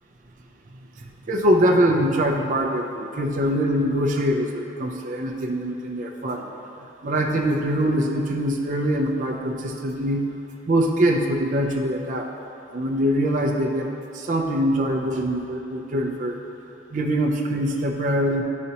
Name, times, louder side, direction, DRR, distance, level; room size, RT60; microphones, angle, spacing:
voice 1, 1.3-6.5 7.0-10.3 10.7-12.3 12.7-13.9 14.1-16.4 16.9-18.4, equal, 45° right, 1 dB, 0.5 m, -23 dB
10.0 x 4.1 x 2.8 m, 2.9 s
head